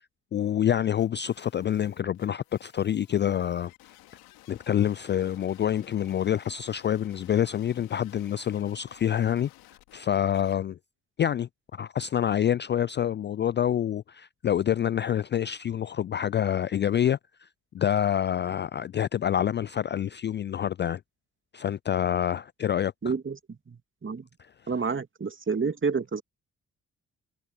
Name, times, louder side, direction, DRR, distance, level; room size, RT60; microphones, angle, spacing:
voice 1, 0.3-3.7 4.5-9.5 9.9-10.8 11.2-11.5 11.8-17.2 17.7-21.0 21.5-22.9, left 10 dB, 30° left, 0.4 m, -27 dB
sound 1, 0.9-10.5, left 19 dB, 75° left, 3.6 m, -55 dB
voice 2, 23.0-23.4 23.7-24.2 24.7-26.2, right 5 dB, 30° right, 2.6 m, -29 dB
hypercardioid pair, 45°, 37 cm